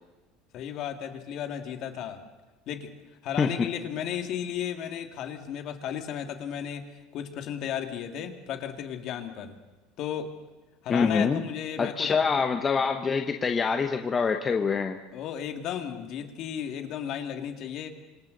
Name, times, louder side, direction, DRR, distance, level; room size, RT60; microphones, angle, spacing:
voice 1, 0.5-2.2 2.7-2.9 3.2-6.8 7.1-9.5 10.0-10.3 10.8-12.1 15.1-17.9, left 9 dB, 50° left, 5 dB, 2.3 m, -34 dB
voice 2, 10.9-11.4 11.8-15.0, left 5 dB, 20° left, 5 dB, 1.0 m, -25 dB
27.5 x 25.5 x 4.0 m, 1.1 s
cardioid pair, 140°, 0 cm